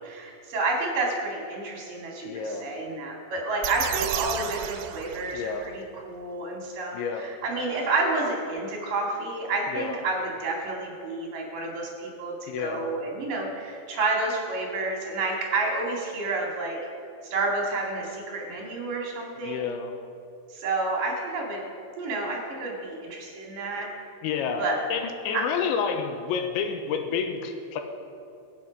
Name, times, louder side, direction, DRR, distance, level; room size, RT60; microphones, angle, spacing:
voice 1, 0.0-16.8 17.2-19.7 20.5-21.7 22.0-23.9 24.6-24.8 25.3-25.4, right 3 dB, 50° right, -1 dB, 3.4 m, -30 dB
voice 2, 2.3-2.8 5.3-5.8 6.9-7.3 9.7-10.0 12.5-12.9 19.4-20.0 24.2-27.8, left 6 dB, 80° left, 6 dB, 3.1 m, -30 dB
sound 1, 3.6-5.8, right 12 dB, 90° right, 3.0 m, -33 dB
22.5 x 8.0 x 5.2 m, 2.5 s
omnidirectional pair, 5.4 m